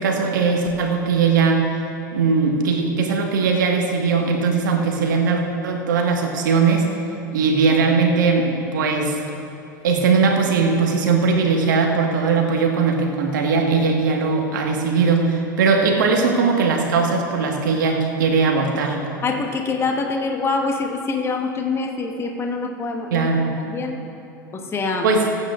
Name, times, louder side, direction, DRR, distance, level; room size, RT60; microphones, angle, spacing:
voice 1, 0.0-1.6 2.1-6.8 7.3-9.2 9.8-19.0 23.1-23.5 25.0-25.3, right 4 dB, 70° right, 2 dB, 1.6 m, -19 dB
voice 2, 19.2-24.0 24.5-25.1, left 3 dB, 25° left, 2 dB, 1.3 m, -25 dB
23.0 x 9.1 x 2.5 m, 2.7 s
hypercardioid pair, 85°, 11 cm